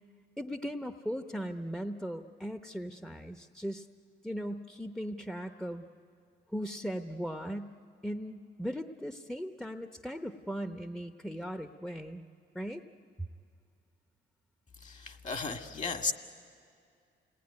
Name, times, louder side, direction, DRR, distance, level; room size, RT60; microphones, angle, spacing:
voice 1, 0.4-3.9 4.2-5.9 6.5-7.7 8.0-12.2 12.5-12.8 13.2-13.3, equal, 5° left, 7 dB, 0.8 m, -38 dB
voice 2, 14.8-16.1, left 4 dB, 40° left, 5 dB, 1.9 m, -35 dB
29.0 x 19.5 x 9.6 m, 2.4 s
cardioid pair, 90°, 20 cm